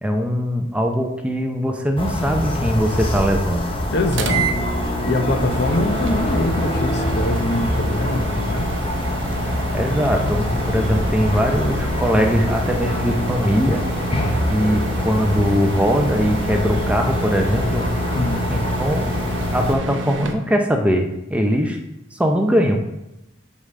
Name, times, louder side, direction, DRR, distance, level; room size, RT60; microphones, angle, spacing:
voice 1, 0.0-3.7 9.7-13.8 14.5-17.9 18.5-19.2 19.5-21.8 22.1-22.8, equal, 5° right, 3 dB, 0.6 m, -21 dB
sound 1, 2.0-19.7, left 1 dB, 30° left, 0.8 m, -25 dB
voice 2, 3.9-8.7 18.1-18.5, left 1 dB, 55° left, 6 dB, 0.8 m, -24 dB
sound 2, 4.1-20.3, right 2 dB, 70° right, 0.8 m, -29 dB
5.5 x 4.9 x 6.5 m, 0.90 s
head